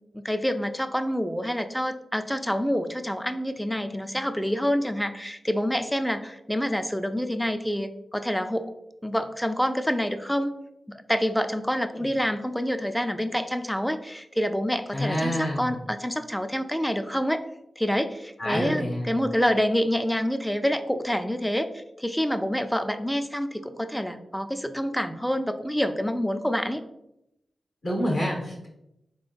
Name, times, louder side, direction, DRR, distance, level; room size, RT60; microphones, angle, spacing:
voice 1, 0.1-8.7 9.0-10.5 10.9-17.4 17.8-26.8, equal, 5° left, 9 dB, 0.4 m, -27 dB
voice 2, 14.9-15.7 18.4-19.1 27.8-28.7, equal, 70° left, -1 dB, 1.3 m, -27 dB
3.6 x 3.6 x 2.5 m, 0.84 s
cardioid pair, 45°, 0 cm